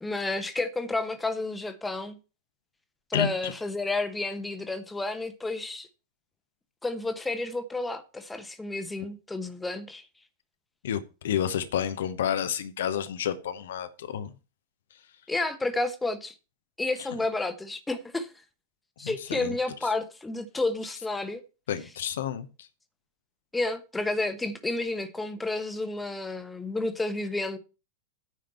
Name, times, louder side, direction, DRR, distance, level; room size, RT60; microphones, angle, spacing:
voice 1, 0.0-2.2 3.1-5.9 6.8-10.0 15.3-16.3 16.8-18.3 19.0-21.4 23.5-27.6, left 2 dB, 10° left, 1.1 m, -31 dB
voice 2, 3.1-3.5 10.8-14.3 19.0-19.5 21.7-22.7, left 9 dB, 60° left, 0.9 m, -30 dB
9.5 x 5.1 x 6.9 m
figure-of-eight pair, 90°, 0 cm